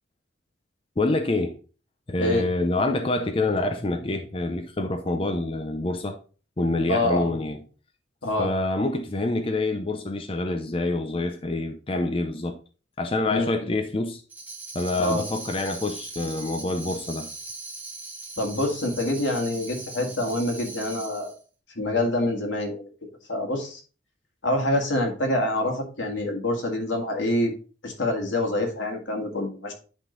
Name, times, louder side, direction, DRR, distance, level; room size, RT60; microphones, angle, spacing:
voice 1, 1.0-1.5 2.1-6.2 6.6-7.6 8.4-12.6 13.0-14.2 14.7-17.3, left 2 dB, 30° left, 0.6 m, -26 dB
voice 2, 6.9-7.3 8.2-8.5 13.3-13.7 15.0-15.2 18.4-21.3 21.8-22.9 23.3-23.8 24.4-27.5 27.8-29.7, left 1 dB, 80° left, 1.9 m, -26 dB
Tambourine, 14.3-21.4, right 3 dB, 10° right, 1.0 m, -40 dB
10.0 x 3.7 x 3.8 m
head